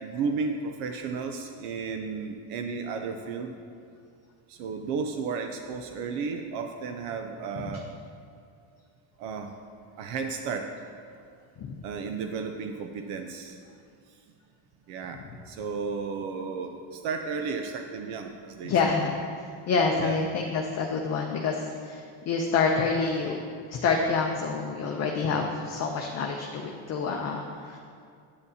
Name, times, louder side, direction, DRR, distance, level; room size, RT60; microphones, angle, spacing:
voice 1, 0.0-3.6 4.5-7.9 9.2-9.5 10.0-10.7 11.8-13.6 14.9-15.2 15.5-19.0 19.9-20.2, right 5 dB, 80° right, 5 dB, 0.7 m, -33 dB
voice 2, 18.6-19.1 19.7-23.4 23.7-27.8, left 4 dB, 35° left, 1 dB, 0.5 m, -27 dB
8.9 x 8.6 x 2.8 m, 2.3 s
cardioid pair, 145°, 49 cm